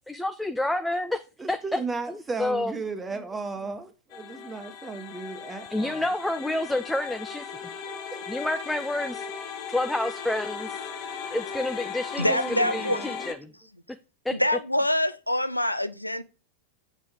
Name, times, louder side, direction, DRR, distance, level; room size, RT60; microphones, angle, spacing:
voice 1, 0.1-1.8 2.1-2.7 5.7-7.5 8.3-9.2 9.7-10.8 11.3-13.5 14.3-14.4, left 1 dB, 5° left, 0.5 m, -29 dB
voice 2, 1.4-6.0 7.9-8.2 12.2-13.2, right 4 dB, 15° right, 1.2 m, -35 dB
sound 1, 4.1-13.3, left 6 dB, 45° left, 1.0 m, -37 dB
voice 3, 12.2-13.1 14.3-16.2, left 1 dB, 85° left, 0.4 m, -25 dB
6.8 x 4.8 x 3.7 m
figure-of-eight pair, 90°, 0 cm